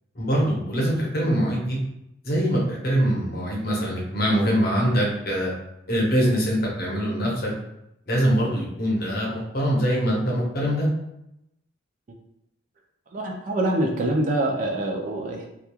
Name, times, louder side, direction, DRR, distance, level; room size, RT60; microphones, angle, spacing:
voice 1, 0.1-1.8 2.2-5.5 5.9-7.5 8.1-10.9, equal, 45° left, -3 dB, 0.7 m, -23 dB
voice 2, 13.1-15.5, right 1 dB, 40° right, 1 dB, 0.3 m, -25 dB
2.9 x 2.3 x 2.2 m, 0.83 s
head